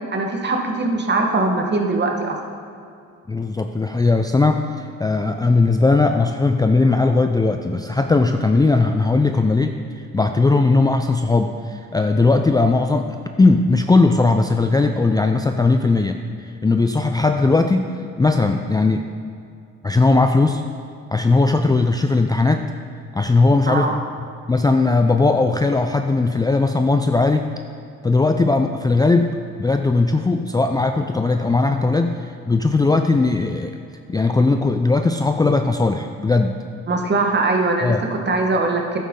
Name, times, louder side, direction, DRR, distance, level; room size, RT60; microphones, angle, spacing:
voice 1, 0.1-2.6 23.7-24.0 36.9-39.0, right 3 dB, 35° right, 2 dB, 1.4 m, -21 dB
voice 2, 3.3-16.2 16.6-17.9 18.2-19.1 19.8-20.6 21.1-22.7 23.1-23.9 24.2-27.5 28.0-33.7 34.1-36.6 37.8-38.0, left 3 dB, 15° left, 6 dB, 0.4 m, -18 dB
11.5 x 8.7 x 3.7 m, 2.4 s
cardioid pair, 90°, 30 cm